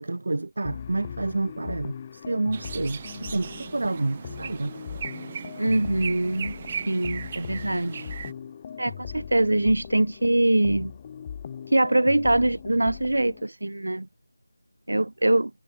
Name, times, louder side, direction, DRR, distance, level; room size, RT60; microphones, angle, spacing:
voice 1, 0.0-4.7, right 2 dB, 55° right, 1.0 m, -29 dB
sound 1, 0.6-13.4, left 8 dB, 20° left, 6.4 m, -40 dB
sound 2, 2.5-8.3, right 6 dB, 25° right, 2.6 m, -38 dB
voice 2, 5.6-6.6 6.9-8.1 8.8-10.9 11.7-14.1 14.9-15.5, right 1 dB, 75° right, 3.9 m, -23 dB
figure-of-eight pair, 165°, 0 cm